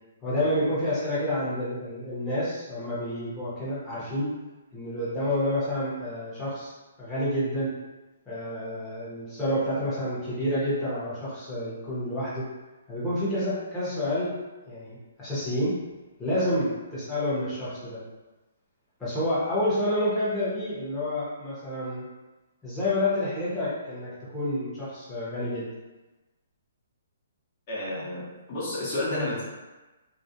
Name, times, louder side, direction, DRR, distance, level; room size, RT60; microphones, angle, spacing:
voice 1, 0.2-4.3 4.7-6.7 7.0-7.7 8.3-12.5 12.9-14.3 14.7-15.8 16.2-18.0 19.0-22.0 22.6-25.7, left 1 dB, 10° left, -10 dB, 0.9 m, -29 dB
voice 2, 27.7-29.4, left 1 dB, 35° left, -7 dB, 1.0 m, -31 dB
2.4 x 2.1 x 2.7 m, 1.1 s
hypercardioid pair, 155°, 0 cm